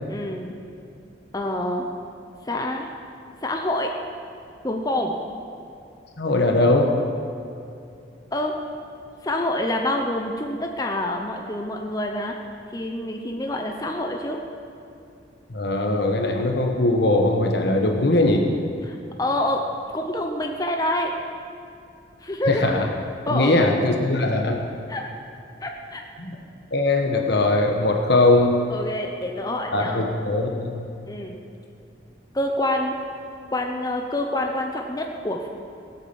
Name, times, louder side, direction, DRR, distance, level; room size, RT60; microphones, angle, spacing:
voice 1, 0.1-0.5 1.3-1.9 2.5-2.9 3.4-3.9 4.6-5.2 8.3-8.5 9.2-12.3 12.7-14.4 18.9-19.7 19.9-21.2 22.2-22.6 23.3-23.6 24.9-25.1 25.6-26.0 28.7-30.1 31.1-31.4 32.3-33.0 33.5-35.5, left 1 dB, 20° left, 2 dB, 0.9 m, -27 dB
voice 2, 6.2-6.9 15.5-18.5 22.5-22.9 23.3-24.6 26.2-26.4 26.7-28.6 29.7-30.8, left 2 dB, 60° left, 2 dB, 1.3 m, -20 dB
18.0 x 8.4 x 7.1 m, 2.6 s
head